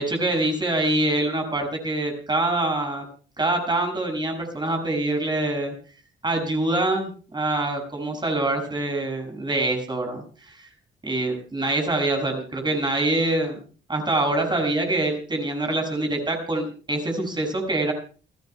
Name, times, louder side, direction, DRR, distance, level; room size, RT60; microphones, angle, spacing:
voice 1, 0.0-3.1 3.4-5.7 6.2-10.7 11.0-13.6 13.9-17.9, right 2 dB, 20° right, 3 dB, 6.8 m, -25 dB
29.5 x 13.5 x 2.3 m, 0.37 s
cardioid pair, 90°, 20 cm